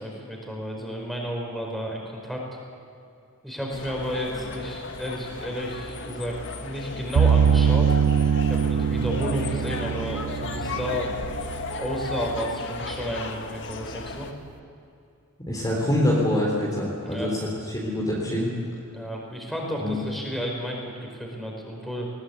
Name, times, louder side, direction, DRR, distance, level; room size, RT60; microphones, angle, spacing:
voice 1, 0.0-2.4 3.4-7.9 8.5-11.1 11.8-14.3 17.0-17.3 18.9-22.1, equal, ahead, -1 dB, 4.8 m, -32 dB
sound 1, 3.7-14.3, left 3 dB, 60° left, 1.7 m, -34 dB
sound 2, 7.2-12.3, right 7 dB, 85° right, 0.4 m, -23 dB
voice 2, 15.5-17.4 17.7-18.6 19.8-20.0, left 1 dB, 20° left, -4 dB, 3.6 m, -25 dB
21.0 x 19.0 x 8.3 m, 2.6 s
head